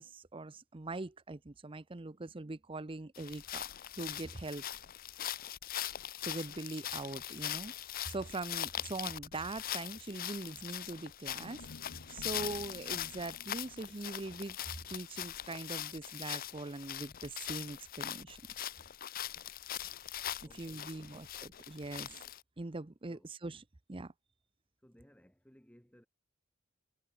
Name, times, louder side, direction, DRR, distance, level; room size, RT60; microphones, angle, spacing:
voice 1, 0.0-3.7 4.0-4.6 6.2-7.7 8.1-11.7 12.1-14.6 14.9-18.4 20.5-22.2 22.6-23.6 23.9-24.1, right 2 dB, 25° right, 0.7 m, -42 dB
sound 1, 3.1-22.4, left 11 dB, 45° left, 0.6 m, -41 dB
sound 2, 11.2-15.5, left 2 dB, 90° left, 1.1 m, -54 dB
voice 2, 20.4-21.2 23.1-23.4 24.8-26.1, equal, 5° left, 2.8 m, -62 dB
head